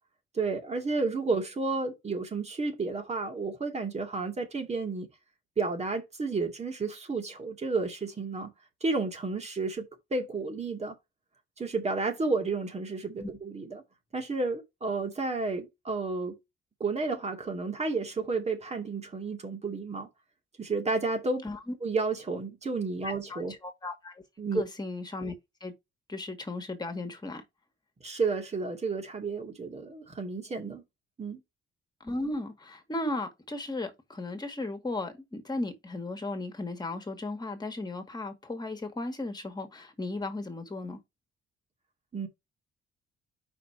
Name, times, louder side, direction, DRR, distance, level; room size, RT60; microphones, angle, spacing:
voice 1, 0.3-5.1 5.6-8.5 8.8-11.0 11.6-13.8 14.1-16.4 16.8-20.1 20.6-21.4 21.8-23.6 24.4-24.6 28.0-30.8 31.2-31.4 42.1-42.3, right 3 dB, 35° right, 2.5 m, -31 dB
voice 2, 21.4-21.7 23.0-24.1 24.5-25.3 25.6-25.7 26.1-27.4 32.0-41.0, left 2 dB, 20° left, 2.1 m, -36 dB
5.5 x 4.5 x 5.1 m
cardioid pair, 90°, 20 cm